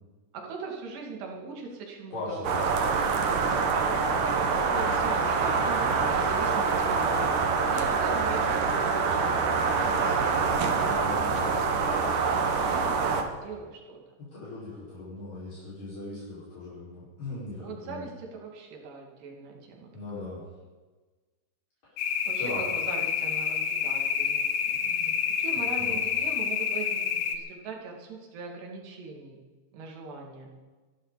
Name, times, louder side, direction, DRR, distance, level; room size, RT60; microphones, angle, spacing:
voice 1, 0.3-2.5 3.1-7.4 7.7-10.3 10.8-14.0 17.6-20.3 22.3-29.4 29.7-30.5, right 4 dB, 75° right, 0 dB, 4.5 m, -41 dB
voice 2, 2.1-2.7 3.3-3.5 10.8-11.4 14.2-18.0 19.9-20.4 22.4-22.6 25.5-26.0, left 2 dB, 55° left, -9 dB, 6.8 m, -39 dB
sound 1, 2.4-13.2, right 5 dB, 60° right, 2.6 m, -25 dB
sound 2, 22.0-27.4, left 7 dB, 75° left, 3.2 m, -28 dB
25.0 x 12.5 x 4.1 m, 1.3 s
omnidirectional pair, 4.8 m